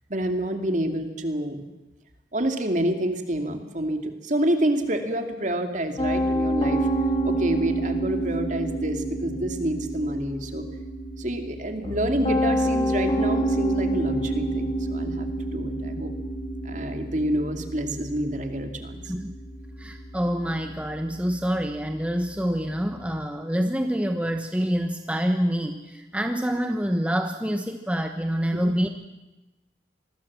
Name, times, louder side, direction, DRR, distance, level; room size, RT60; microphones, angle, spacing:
voice 1, 0.1-1.7 2.3-6.9 7.2-10.6 11.2-16.1 16.6-19.1 28.5-28.7, right 1 dB, 45° right, 6 dB, 2.5 m, -28 dB
Piano, 6.0-23.1, right 1 dB, 30° left, 2.9 m, -28 dB
voice 2, 19.8-28.9, equal, 5° right, 5 dB, 1.1 m, -26 dB
26.5 x 20.5 x 7.4 m, 1.0 s
head